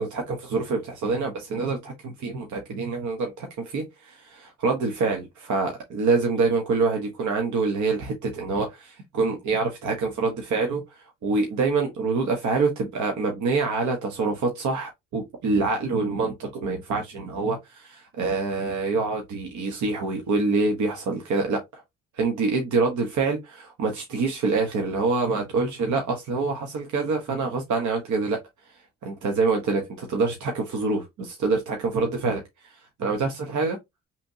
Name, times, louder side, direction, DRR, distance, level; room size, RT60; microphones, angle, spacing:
voice 1, 0.0-21.8 22.1-28.4 28.7-33.8, right 4 dB, 70° right, 1.2 m, -26 dB
5.3 x 3.5 x 2.8 m
cardioid pair, 90°, 30 cm